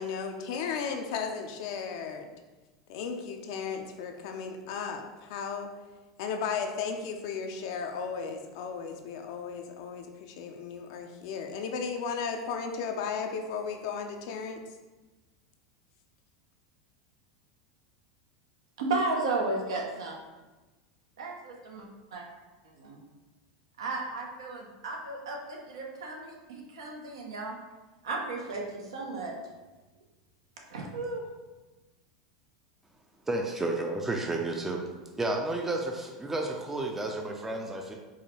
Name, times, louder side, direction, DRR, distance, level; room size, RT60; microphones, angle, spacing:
voice 1, 0.0-2.3 2.9-5.7 6.2-14.6, left 6 dB, 65° left, 4 dB, 0.4 m, -35 dB
voice 2, 18.8-20.2 21.2-22.3 22.8-23.0 23.8-27.5 28.0-29.3 30.7-31.2, right 3 dB, 85° right, 0 dB, 0.7 m, -34 dB
voice 3, 33.3-34.8 35.2-37.9, right 2 dB, 10° right, 2 dB, 0.4 m, -31 dB
4.6 x 2.2 x 3.0 m, 1.2 s
hypercardioid pair, 95°, 3 cm